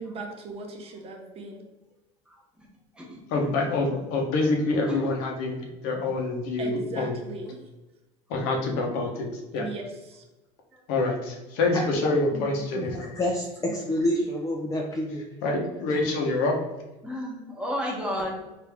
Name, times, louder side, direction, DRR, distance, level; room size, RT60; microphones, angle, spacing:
voice 1, 0.0-1.6 6.6-7.6 9.5-10.2 13.6-13.9, right 3 dB, 40° right, 2 dB, 0.7 m, -38 dB
voice 2, 2.3-2.7 2.9-3.6 4.9-5.1 10.7-10.8 17.0-18.4, equal, 5° right, -2 dB, 1.0 m, -33 dB
voice 3, 3.3-7.2 8.3-9.7 10.9-13.1 15.4-16.6, left 2 dB, 70° left, 1 dB, 0.9 m, -26 dB
voice 4, 12.7-15.3, left 1 dB, 20° left, -1 dB, 0.5 m, -28 dB
3.3 x 2.6 x 3.4 m, 1.0 s
supercardioid pair, 115°, 16 cm